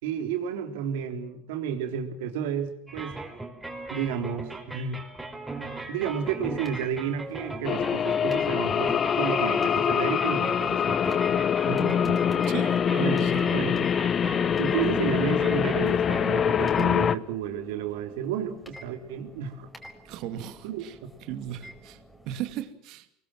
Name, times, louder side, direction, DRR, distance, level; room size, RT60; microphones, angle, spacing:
voice 1, 0.0-3.2 3.9-5.0 5.9-11.0 12.9-13.9 14.6-19.7 20.6-20.9, right 8 dB, 80° right, 6 dB, 3.5 m, -31 dB
sound 1, 2.9-16.5, right 2 dB, 10° right, 5.4 m, -39 dB
sound 2, 6.1-22.5, equal, 5° left, 5.0 m, -50 dB
sound 3, 7.6-17.2, left 8 dB, 40° left, 1.0 m, -24 dB
voice 2, 11.6-12.2 12.5-13.5 20.0-20.9 21.3-22.0 22.2-23.1, right 10 dB, 60° right, 10 dB, 2.5 m, -36 dB
25.0 x 22.0 x 7.6 m, 0.63 s
hypercardioid pair, 90°, 0 cm